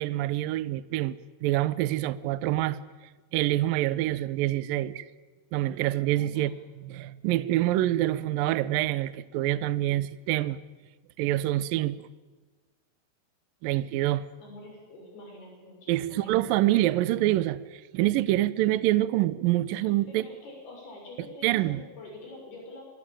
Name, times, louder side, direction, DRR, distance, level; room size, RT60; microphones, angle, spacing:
voice 1, 0.0-2.8 3.3-5.1 5.5-6.5 6.8-10.6 11.2-12.0 13.6-14.3 15.9-20.3 21.4-21.8, right 15 dB, 75° right, 16 dB, 2.1 m, -26 dB
voice 2, 14.4-16.4 19.7-22.8, left 2 dB, 60° left, 1 dB, 7.9 m, -46 dB
24.5 x 23.0 x 8.9 m, 1.3 s
omnidirectional pair, 5.0 m